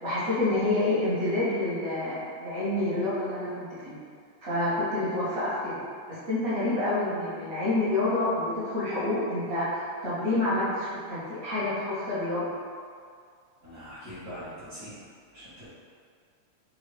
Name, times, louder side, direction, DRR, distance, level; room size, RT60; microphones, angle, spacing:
voice 1, 0.0-4.0 4.4-5.8 6.1-9.7 10.0-12.5, left 2 dB, 85° right, -12 dB, 0.5 m, -28 dB
voice 2, 13.6-14.9 15.3-15.7, equal, 55° right, -13 dB, 0.8 m, -42 dB
4.9 x 2.7 x 3.2 m, 2.2 s
omnidirectional pair, 3.4 m